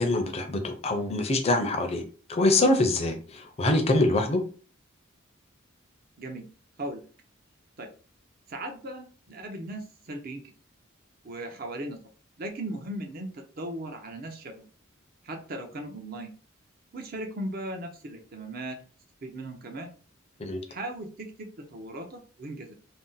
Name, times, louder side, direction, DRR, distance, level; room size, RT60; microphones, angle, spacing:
voice 1, 0.0-2.0 2.3-4.4 20.4-20.6, left 2 dB, 30° left, 5 dB, 0.5 m, -24 dB
voice 2, 8.5-10.4 11.2-12.0 12.4-14.7 15.2-16.3 16.9-18.8 19.2-19.9 20.7-22.7, right 1 dB, 45° right, 4 dB, 0.6 m, -37 dB
2.6 x 2.0 x 3.8 m, 0.39 s
head